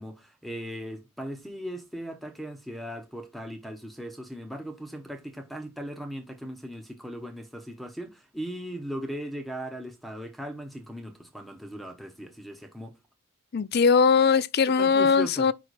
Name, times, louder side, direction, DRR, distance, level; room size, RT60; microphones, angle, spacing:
voice 1, 0.0-13.0 14.8-15.5, equal, ahead, 0.9 m, -38 dB
voice 2, 13.5-15.5, left 5 dB, 45° left, 0.4 m, -20 dB
5.6 x 4.8 x 4.1 m
head